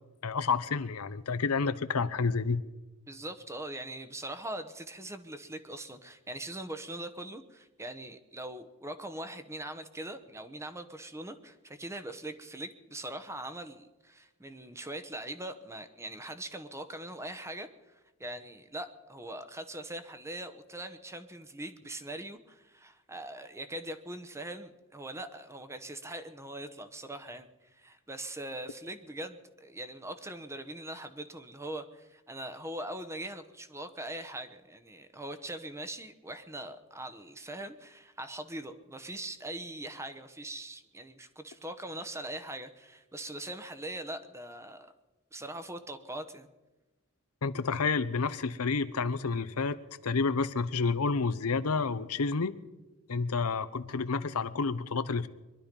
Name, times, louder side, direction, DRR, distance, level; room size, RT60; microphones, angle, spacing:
voice 1, 0.2-2.6 47.4-49.8 50.0-52.5 53.1-55.3, left 4 dB, 85° left, 13 dB, 0.7 m, -29 dB
voice 2, 3.1-44.9 45.3-46.5, right 1 dB, 15° right, 10 dB, 0.9 m, -41 dB
23.0 x 11.5 x 5.3 m, 1.1 s
head